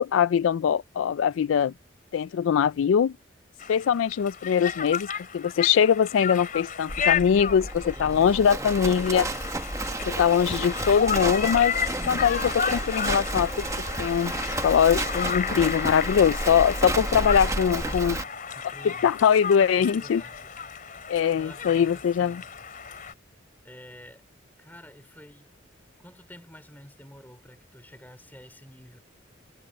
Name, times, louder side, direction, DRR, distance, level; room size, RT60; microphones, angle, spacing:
voice 1, 0.0-1.7 2.1-3.1 3.7-5.1 5.3-9.3 10.0-11.8 12.1-13.5 14.0-14.3 14.6-18.2 18.8-20.2 21.1-22.4, left 8 dB, 85° left, 0.3 m, -22 dB
Conversation, 3.6-23.1, left 7 dB, 45° left, 3.5 m, -33 dB
Livestock farm animals working animals, 6.9-18.2, right 2 dB, 15° right, 1.0 m, -31 dB
voice 2, 8.0-9.5 17.5-18.3 18.5-19.1 19.8-20.5 21.0-22.5 23.6-24.3 24.6-25.5 26.0-29.0, left 1 dB, 10° left, 3.7 m, -49 dB
head